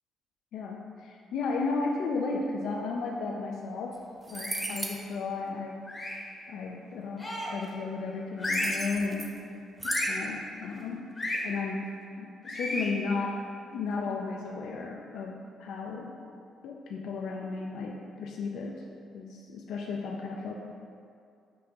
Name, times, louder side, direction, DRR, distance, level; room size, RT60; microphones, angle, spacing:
voice 1, 0.5-4.0 4.3-5.8 6.5-9.3 9.8-11.1 11.4-11.9 12.2-13.4 13.7-16.1 16.6-18.0 18.2-18.7 19.1-20.5, left 4 dB, 80° left, 0 dB, 0.3 m, -34 dB
sound 1, 3.9-4.0 4.2-5.0 8.5-9.4 9.8-10.2, right 2 dB, 20° right, 0.4 m, -36 dB
sound 2, 4.4-4.8 5.9-6.3 7.2-7.7 8.4-8.9 9.8-10.2 11.2-11.4 12.5-12.9, left 1 dB, 25° left, 0.7 m, -32 dB
6.0 x 2.5 x 2.8 m, 2.4 s
cardioid pair, 90°, 0 cm